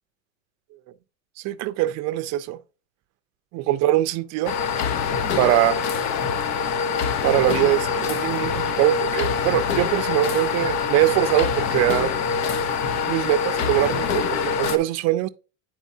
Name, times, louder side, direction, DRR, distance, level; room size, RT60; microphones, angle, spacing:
voice 1, 1.4-2.6 3.5-4.6 5.4-5.8 7.2-12.1 13.1-15.3, right 14 dB, 40° right, 0.6 m, -22 dB
sound 1, 4.4-14.8, left 6 dB, 40° left, 0.7 m, -24 dB
9.4 x 4.3 x 2.7 m
supercardioid pair, 120°, 41 cm